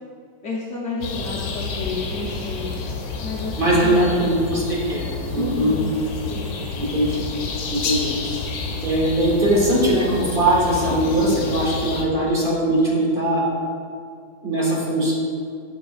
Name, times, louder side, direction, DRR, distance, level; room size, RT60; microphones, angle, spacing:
voice 1, 0.4-2.8 3.2-4.2 5.4-5.9 6.3-6.6, left 3 dB, 60° left, -5 dB, 0.8 m, -31 dB
sound 1, 1.0-12.0, left 4 dB, 75° left, 1.4 m, -29 dB
voice 2, 3.6-5.1 5.3-5.8 6.8-7.2 7.7-8.1 8.8-13.4 14.4-15.1, right 1 dB, 35° right, -5 dB, 1.1 m, -20 dB
7.6 x 6.4 x 2.4 m, 2.3 s
omnidirectional pair, 2.1 m